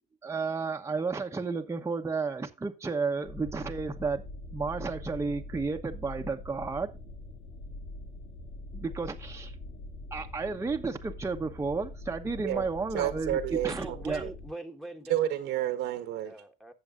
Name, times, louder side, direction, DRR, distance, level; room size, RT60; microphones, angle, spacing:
voice 1, 0.2-4.2 4.5-6.9 8.7-9.5 10.1-14.2, right 4 dB, 15° right, 1.0 m, -32 dB
sound 1, 3.2-14.5, left 2 dB, 70° left, 2.2 m, -43 dB
voice 2, 12.9-14.0 15.1-16.3, right 12 dB, 85° right, 1.4 m, -30 dB
voice 3, 13.7-15.2 16.2-16.7, right 2 dB, ahead, 1.5 m, -42 dB
16.5 x 7.0 x 2.5 m
cardioid pair, 110°, 17 cm